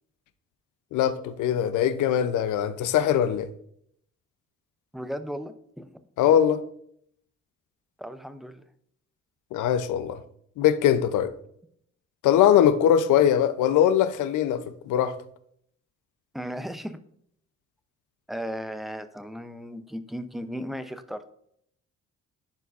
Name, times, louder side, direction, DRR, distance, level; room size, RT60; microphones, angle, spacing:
voice 1, 0.9-3.5 6.2-6.6 9.5-10.2 10.6-11.3 12.2-15.1, left 10 dB, 80° left, 0.6 m, -21 dB
voice 2, 4.9-5.9 8.0-8.6 16.3-17.0 18.3-21.2, equal, ahead, 0.5 m, -36 dB
10.5 x 4.5 x 2.5 m
cardioid pair, 90°, 30 cm